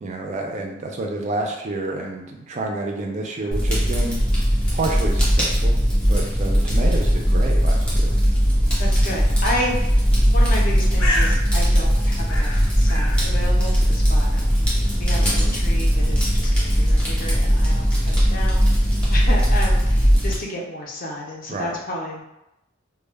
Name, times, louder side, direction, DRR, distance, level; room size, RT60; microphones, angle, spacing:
voice 1, 0.0-4.2 4.7-5.8 6.1-8.2 15.2-15.6 21.5-21.8, right 2 dB, 35° right, 1 dB, 0.3 m, -29 dB
Fire, 3.5-20.3, equal, 5° left, 0.7 m, -19 dB
voice 2, 8.8-10.0 10.3-22.2, left 1 dB, 40° left, -2 dB, 0.5 m, -31 dB
Bird, 10.6-18.1, left 1 dB, 80° left, 0.8 m, -35 dB
2.1 x 2.1 x 3.2 m, 0.89 s
head